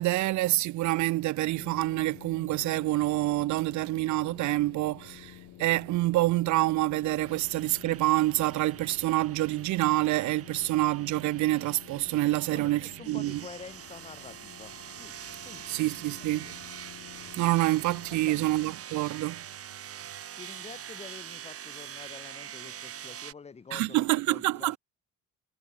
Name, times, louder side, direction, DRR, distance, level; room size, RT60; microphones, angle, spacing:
voice 1, 0.0-13.4 15.7-16.6 17.4-19.4 23.7-24.8, right 18 dB, 70° right, 0.4 m, -27 dB
sound 1, 1.5-18.7, left 16 dB, 75° left, 0.7 m, -51 dB
sound 2, 6.7-23.3, right 9 dB, 50° right, 1.1 m, -45 dB
voice 2, 12.5-15.2 15.4-15.8 16.2-16.5 18.1-18.5 20.4-24.8, left 5 dB, 20° left, 0.6 m, -48 dB
cardioid pair, 90°, 30 cm